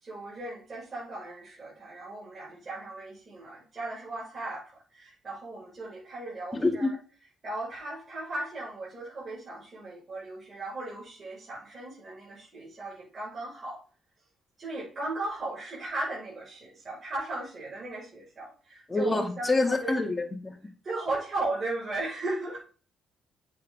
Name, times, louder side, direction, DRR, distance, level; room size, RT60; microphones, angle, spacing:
voice 1, 0.0-6.9 7.4-13.8 14.6-19.9 20.8-22.6, right 2 dB, 40° right, -7 dB, 5.2 m, -37 dB
voice 2, 6.5-6.9 18.9-20.6, left 2 dB, 20° left, 1 dB, 2.3 m, -27 dB
8.5 x 6.9 x 3.7 m, 0.38 s
cardioid pair, 90°, 0 cm